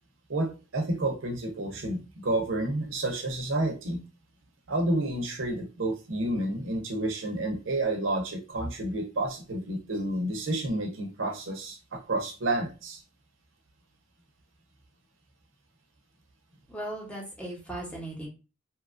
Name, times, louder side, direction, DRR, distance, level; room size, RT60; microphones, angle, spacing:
voice 1, 0.3-4.0 4.7-13.0, right 1 dB, 80° right, 4 dB, 0.7 m, -30 dB
voice 2, 16.7-18.3, right 1 dB, 5° left, -2 dB, 0.8 m, -37 dB
2.9 x 2.3 x 2.5 m, 0.31 s
head